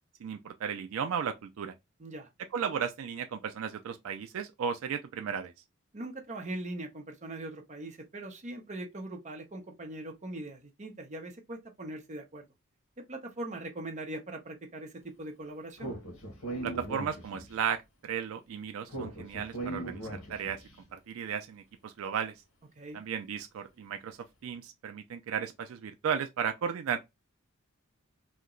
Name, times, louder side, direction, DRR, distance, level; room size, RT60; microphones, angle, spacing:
voice 1, 0.2-1.7 2.5-5.5 16.6-20.6 20.9-22.3 22.9-27.0, right 7 dB, 75° right, 0.3 m, -35 dB
voice 2, 5.9-12.5 13.0-15.9 22.8-23.0, right 1 dB, 35° right, 0.6 m, -41 dB
Speech, 15.8-17.6 18.9-20.6, right 2 dB, 75° left, 1.1 m, -39 dB
2.8 x 2.1 x 3.6 m
head